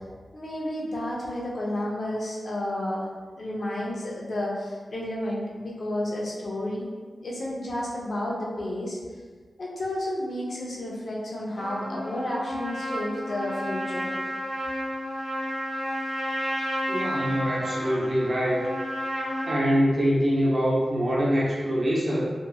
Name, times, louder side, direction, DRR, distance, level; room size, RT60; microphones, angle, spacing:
voice 1, 0.3-3.1 3.4-6.9 7.2-9.0 9.6-14.1, left 1 dB, 60° left, -4 dB, 0.6 m, -31 dB
Trumpet, 11.6-19.6, equal, 40° left, 1.0 m, -31 dB
voice 2, 16.9-18.6 19.4-22.3, equal, 40° right, -5 dB, 0.6 m, -24 dB
2.9 x 2.6 x 2.3 m, 1.5 s
wide cardioid pair, 95°, 0 cm